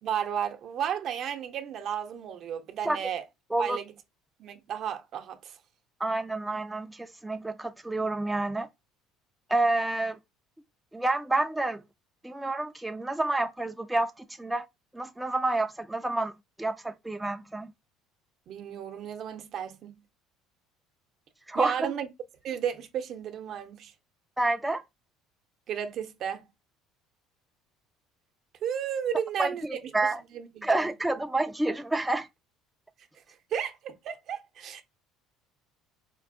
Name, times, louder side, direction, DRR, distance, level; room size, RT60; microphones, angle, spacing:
voice 1, 0.0-3.2 3.6-3.9 4.4-5.6 18.5-19.9 21.5-22.1 22.4-23.9 25.7-26.5 28.6-29.7 30.0-30.9 33.5-34.8, right 9 dB, 55° right, 0.7 m, -33 dB
voice 2, 6.0-8.7 9.5-10.2 10.9-11.8 12.2-14.7 14.9-16.3 16.6-17.7 21.5-21.7 24.4-24.8 29.4-30.2 30.6-32.3, right 2 dB, 10° right, 0.3 m, -29 dB
4.4 x 2.6 x 2.5 m
supercardioid pair, 85°, 0 cm